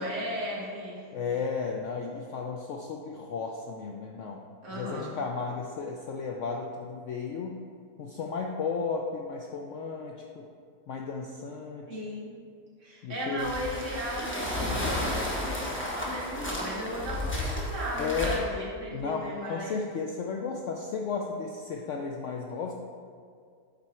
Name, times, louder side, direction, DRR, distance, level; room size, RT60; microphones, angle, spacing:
voice 1, 0.0-1.1 4.6-5.2 11.9-12.3 12.8-19.8, equal, 45° right, -6 dB, 2.0 m, -36 dB
voice 2, 1.1-4.4 4.7-7.6 8.0-10.5 10.9-12.0 13.0-13.5 18.0-18.4 18.9-22.7, left 5 dB, 80° left, 1 dB, 0.6 m, -34 dB
sound 1, 13.4-18.4, left 1 dB, 10° left, 0.8 m, -32 dB
7.9 x 4.6 x 4.3 m, 2.2 s
omnidirectional pair, 1.8 m